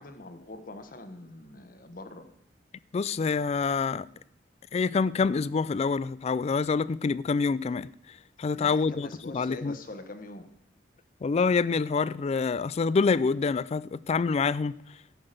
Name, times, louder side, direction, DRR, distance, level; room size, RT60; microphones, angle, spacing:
voice 1, 0.0-2.2 8.6-10.5, left 2 dB, 50° left, 1.3 m, -43 dB
voice 2, 2.9-4.1 4.7-9.8 11.2-15.0, left 4 dB, 35° left, 0.3 m, -27 dB
14.0 x 6.0 x 6.6 m
head